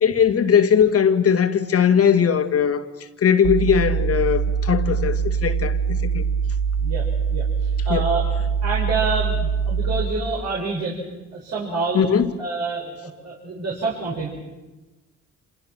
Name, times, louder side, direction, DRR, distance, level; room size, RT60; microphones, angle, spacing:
voice 1, 0.0-2.8 3.2-6.2 7.9-8.0 11.9-12.3, left 7 dB, 50° left, 8 dB, 2.1 m, -19 dB
sound 1, 3.4-10.2, right 6 dB, 80° right, 2.2 m, -23 dB
voice 2, 6.8-8.3 8.6-11.0 11.3-12.1 12.4-14.3, right 3 dB, 60° right, -3 dB, 6.2 m, -27 dB
28.0 x 27.5 x 6.1 m, 1.1 s
cardioid pair, 90°, 30 cm